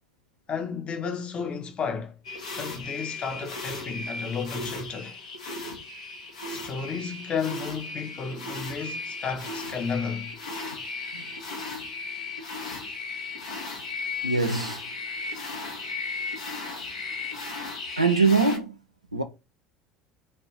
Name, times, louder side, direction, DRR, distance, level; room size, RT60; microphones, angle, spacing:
voice 1, 0.5-2.2 2.6-5.2 6.5-10.3, left 6 dB, 35° left, 0.8 m, -32 dB
sound 1, 2.2-18.6, left 3 dB, 75° left, 0.8 m, -36 dB
voice 2, 14.2-14.8 18.0-18.7 19.1-19.2, right 4 dB, 90° right, 0.4 m, -22 dB
3.3 x 2.5 x 4.5 m
figure-of-eight pair, 65°, 3 cm